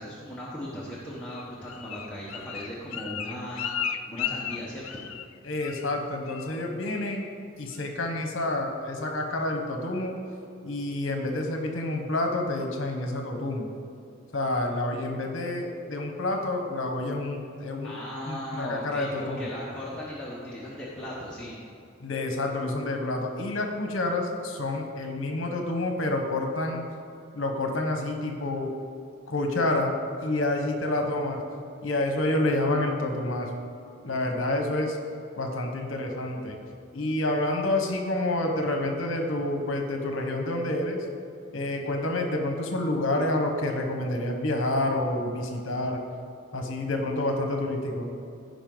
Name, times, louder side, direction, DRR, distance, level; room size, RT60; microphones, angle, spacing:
voice 1, 0.0-5.0 17.8-21.5, equal, 5° left, -9 dB, 1.2 m, -37 dB
Bird, 1.3-5.3 5.6-6.0 6.3-6.6 6.9-7.3 7.7-7.8, left 9 dB, 90° left, 0.5 m, -35 dB
voice 2, 5.4-7.3 7.6-10.2 10.6-13.7 14.3-17.9 18.3-19.5 22.0-26.8 27.3-28.7 29.3-29.9 30.2-31.4 31.8-33.5 34.0-35.0 35.4-36.6 36.9-41.0 41.5-46.0 46.5-48.1, left 2 dB, 70° left, 3 dB, 1.1 m, -28 dB
15.5 x 5.2 x 3.9 m, 2.5 s
head